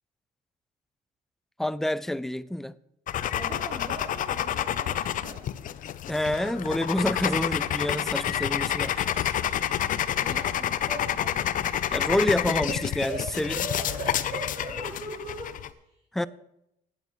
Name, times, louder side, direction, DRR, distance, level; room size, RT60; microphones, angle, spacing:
voice 1, 1.6-2.8 6.1-8.9 11.9-13.6 16.1-16.3, left 1 dB, ahead, 0.3 m, -27 dB
sound 1, 3.1-15.7, left 10 dB, 50° left, 0.6 m, -29 dB
voice 2, 3.4-5.7 10.2-11.7 12.6-16.3, right 1 dB, 25° right, 4.3 m, -40 dB
17.5 x 9.1 x 3.1 m
cardioid pair, 110°, 17 cm